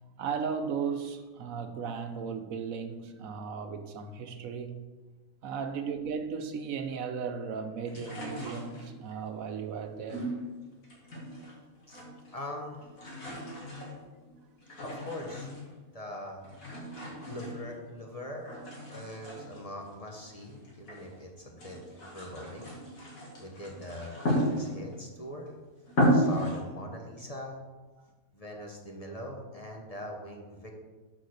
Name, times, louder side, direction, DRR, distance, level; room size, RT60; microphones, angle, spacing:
voice 1, 0.2-4.8 5.4-10.3 13.1-13.2 13.9-14.0, right 6 dB, 85° right, 1.2 m, -36 dB
sound 1, 7.9-9.1 10.1-11.6 11.8-12.4 12.7-15.8 16.4-18.1 18.5-21.1 21.5-25.0 25.5-25.6 25.9-26.6, equal, 80° left, 2.7 m, -34 dB
voice 2, 12.3-12.9 14.8-15.5 15.9-16.4 17.1-18.5 18.9-22.7 23.4-25.5 26.1-27.6 28.3-30.7, left 1 dB, 30° left, 1.2 m, -42 dB
6.5 x 6.3 x 6.5 m
omnidirectional pair, 1.4 m